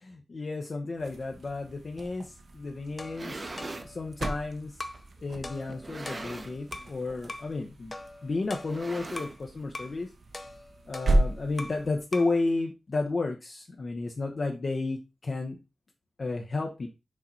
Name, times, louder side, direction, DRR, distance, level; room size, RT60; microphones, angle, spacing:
voice 1, 0.0-3.4 3.8-4.7 5.2-7.9 8.2-10.1 10.9-15.6 16.2-16.9, left 3 dB, 45° left, 2 dB, 0.9 m, -32 dB
sound 1, 0.9-12.1, right 1 dB, 65° right, 1.0 m, -35 dB
sound 2, 2.9-3.9 4.7-4.8 5.7-6.7 7.0-7.3 7.6-7.7 8.5-9.6, right 2 dB, 30° right, 0.9 m, -41 dB
sound 3, 3.0-4.5 4.8-5.1 5.4-7.0 7.3-7.5 7.9-9.4 9.7-10.0 10.3-11.9 12.1-12.4, left 2 dB, 25° left, 0.5 m, -42 dB
6.4 x 4.2 x 4.4 m, 0.27 s
wide cardioid pair, 140°, 0 cm